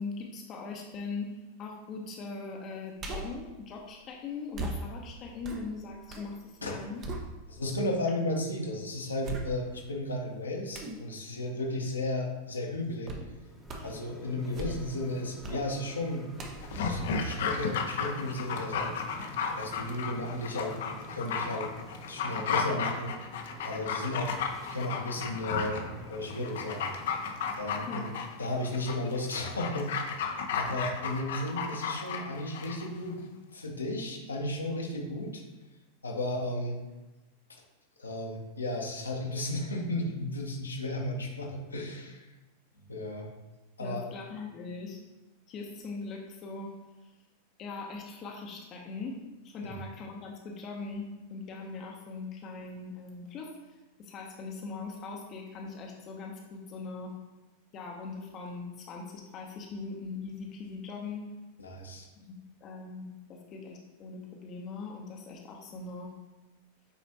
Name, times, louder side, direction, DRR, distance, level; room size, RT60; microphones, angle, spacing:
voice 1, 0.0-7.0 27.9-28.0 43.8-45.0 45.5-46.7 47.0-47.1 47.6-49.2 49.4-57.1 57.7-61.3 62.3-66.1, left 4 dB, 35° left, 0 dB, 0.9 m, -41 dB
sound 1, 3.0-3.5 4.5-6.3 6.7-7.8 8.3-8.4 9.2-9.9 10.7-11.0 13.1-13.3 13.6-14.0 14.4-15.0 15.4-15.7 16.4-18.0 18.4-18.5, right 1 dB, 30° right, 0.9 m, -40 dB
voice 2, 7.5-13.2 13.8-16.2 16.8-18.9 19.6-20.8 21.1-21.7 22.1-23.2 23.6-24.3 24.6-26.9 27.6-28.1 28.4-30.3 30.5-33.2 33.5-35.4 36.0-36.8 38.0-42.3 42.9-43.3 43.8-44.0 61.6-62.1, left 1 dB, 75° left, -1 dB, 1.1 m, -34 dB
sound 2, 13.3-29.9, equal, ahead, 1.0 m, -49 dB
Dog, 16.6-32.9 33.2-33.3, left 6 dB, 55° left, 0.7 m, -34 dB
8.4 x 4.2 x 2.9 m, 1.1 s
figure-of-eight pair, 90°, 0 cm